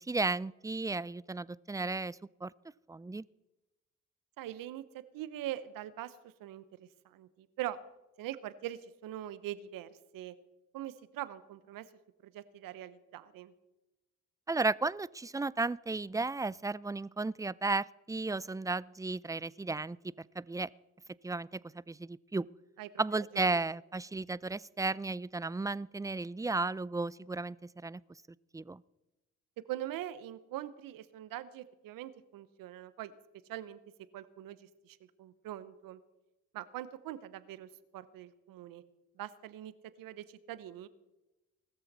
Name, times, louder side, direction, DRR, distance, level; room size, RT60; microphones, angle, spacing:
voice 1, 0.0-2.5 2.9-3.2 14.5-20.7 21.2-21.6 21.9-22.5 23.0-27.6 27.8-28.0 28.5-28.8, right 3 dB, 10° right, 22 dB, 0.4 m, -34 dB
voice 2, 4.4-7.8 8.2-10.3 10.7-11.9 12.2-13.5 22.8-22.9 23.3-23.6 29.7-33.1 33.5-33.8 34.1-36.0 36.5-38.8 39.2-40.9, right 13 dB, 80° right, 15 dB, 1.0 m, -43 dB
19.5 x 13.5 x 4.2 m, 0.98 s
hypercardioid pair, 45°, 34 cm